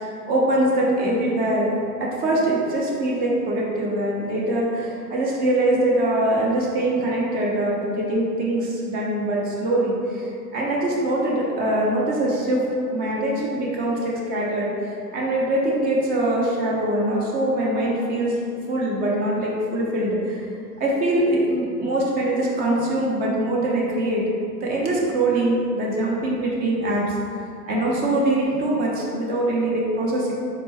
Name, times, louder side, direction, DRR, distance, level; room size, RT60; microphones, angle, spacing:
voice 1, 0.3-1.7 2.0-12.6 12.9-18.4 18.7-20.4 20.8-24.2 24.6-27.2 27.7-30.3, right 1 dB, 20° right, -4 dB, 0.5 m, -23 dB
4.3 x 2.1 x 3.2 m, 2.5 s
hypercardioid pair, 105°, 50 cm